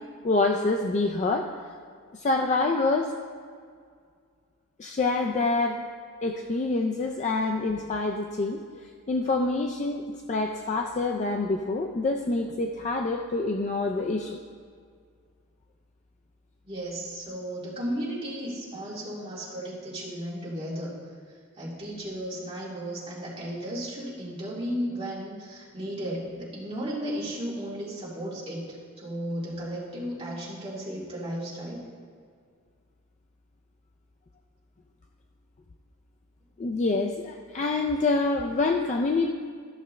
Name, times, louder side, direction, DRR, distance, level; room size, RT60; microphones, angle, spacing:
voice 1, 0.2-1.5 2.1-3.1 4.8-5.8 6.2-14.4 36.6-39.3, left 3 dB, 35° left, 3 dB, 0.4 m, -26 dB
voice 2, 16.6-21.0 21.5-31.8, equal, 25° right, -7 dB, 2.3 m, -34 dB
13.5 x 6.4 x 3.2 m, 2.1 s
head